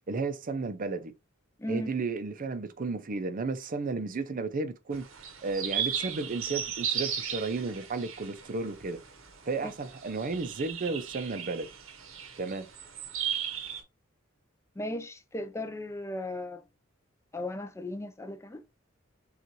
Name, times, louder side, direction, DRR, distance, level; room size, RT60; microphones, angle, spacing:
voice 1, 0.1-1.1 1.7-5.0 5.4-9.0 9.5-11.7 12.4-12.7, right 3 dB, 45° right, 0.5 m, -33 dB
voice 2, 1.6-1.9 9.6-9.7 14.8-16.6 17.3-18.6, left 1 dB, 15° left, 0.5 m, -36 dB
sound 1, 4.9-13.8, right 8 dB, 90° right, 1.0 m, -36 dB
6.6 x 2.4 x 3.0 m
head